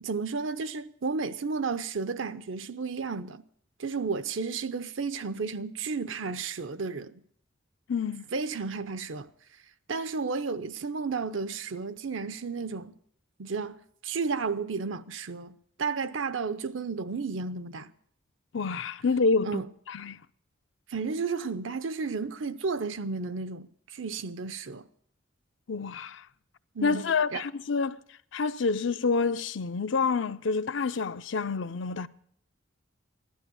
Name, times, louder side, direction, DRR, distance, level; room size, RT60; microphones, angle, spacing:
voice 1, 0.0-3.4 3.8-7.2 8.3-9.3 9.9-13.0 13.4-13.8 14.0-17.9 19.4-19.7 20.9-24.9 26.7-27.4, right 4 dB, 75° right, 0.7 m, -33 dB
voice 2, 7.9-8.3 18.5-19.6 19.9-20.2 25.7-26.2 26.8-28.0 28.3-32.1, left 4 dB, 65° left, 0.5 m, -28 dB
15.5 x 12.0 x 7.0 m
head